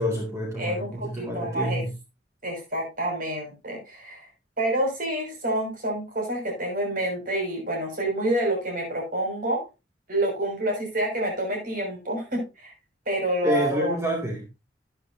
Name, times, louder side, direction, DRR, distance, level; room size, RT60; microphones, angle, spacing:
voice 1, 0.0-1.9 13.4-14.5, equal, 15° right, -1 dB, 2.4 m, -28 dB
voice 2, 0.6-0.9 1.2-1.8 2.4-4.3 4.6-9.6 10.1-12.7 13.1-13.9, right 1 dB, 50° right, 1 dB, 6.2 m, -28 dB
12.5 x 9.8 x 2.7 m, 0.28 s
head